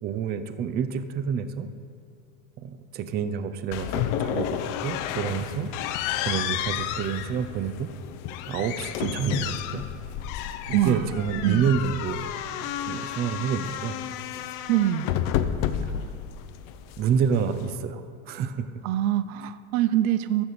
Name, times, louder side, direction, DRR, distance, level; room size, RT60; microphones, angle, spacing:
voice 1, 0.0-1.7 2.6-5.7 6.2-7.9 8.5-9.8 10.7-12.3 12.6-14.0 15.8-15.9 17.0-18.7, right 7 dB, 25° right, 10 dB, 0.4 m, -28 dB
sound 1, 3.7-17.8, left 10 dB, 50° left, 0.6 m, -31 dB
voice 2, 10.7-11.1 11.4-11.7 14.7-15.1 18.8-20.4, right 12 dB, 75° right, 14 dB, 0.6 m, -24 dB
12.5 x 6.9 x 4.1 m, 2.5 s
supercardioid pair, 115°, 42 cm